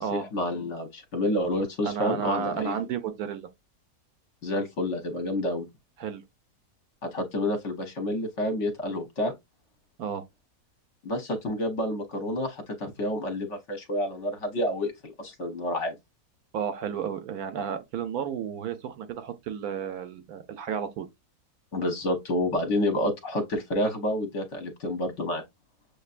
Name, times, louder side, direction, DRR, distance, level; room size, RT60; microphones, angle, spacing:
voice 1, 0.1-2.8 4.4-5.7 7.0-9.3 11.0-15.9 21.7-25.4, left 1 dB, 55° left, 1.0 m, -29 dB
voice 2, 1.8-3.5 6.0-6.2 10.0-10.2 16.5-21.1, right 7 dB, 70° right, 1.1 m, -32 dB
6.6 x 2.6 x 2.4 m
omnidirectional pair, 1.7 m